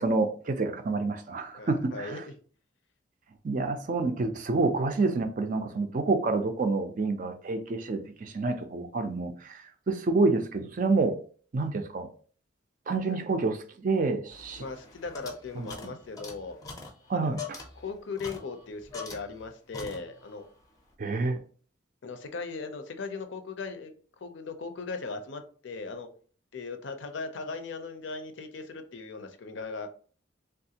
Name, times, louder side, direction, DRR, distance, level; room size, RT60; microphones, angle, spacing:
voice 1, 0.0-2.2 3.4-11.2 11.5-12.1 12.9-14.6 15.6-15.9 17.1-17.6 21.0-21.4, right 3 dB, 40° right, 0.4 m, -28 dB
voice 2, 1.5-2.2 14.5-16.6 17.1-17.4 17.8-20.4 22.0-23.9 24.2-26.1 26.5-29.9, left 4 dB, 65° left, 0.5 m, -38 dB
sound 1, 14.3-19.5 19.7-20.4, left 4 dB, 20° left, 0.5 m, -44 dB
3.4 x 2.4 x 2.8 m
head